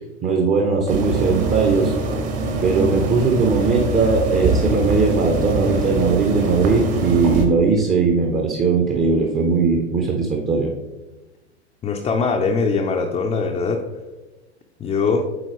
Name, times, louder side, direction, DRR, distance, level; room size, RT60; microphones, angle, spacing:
voice 1, 0.2-1.9 2.6-10.7, right 4 dB, 25° right, 2 dB, 0.7 m, -19 dB
sound 1, 0.9-7.4, right 2 dB, 45° right, 1.4 m, -24 dB
voice 2, 11.8-13.8 14.8-15.3, left 4 dB, 15° left, 0 dB, 0.5 m, -21 dB
7.7 x 4.5 x 3.0 m, 1.1 s
figure-of-eight pair, 90°, 34 cm